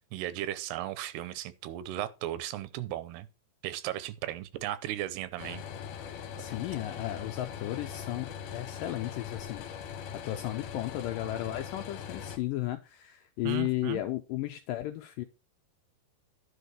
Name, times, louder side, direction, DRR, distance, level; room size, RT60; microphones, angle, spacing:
voice 1, 0.1-3.3 3.6-5.6 13.4-14.0, right 13 dB, 85° right, 2.8 m, -36 dB
sound 1, 5.4-12.4, left 8 dB, 65° left, 2.2 m, -41 dB
voice 2, 6.4-10.0 10.2-15.2, left 15 dB, 80° left, 2.0 m, -34 dB
10.5 x 4.5 x 6.7 m
omnidirectional pair, 4.5 m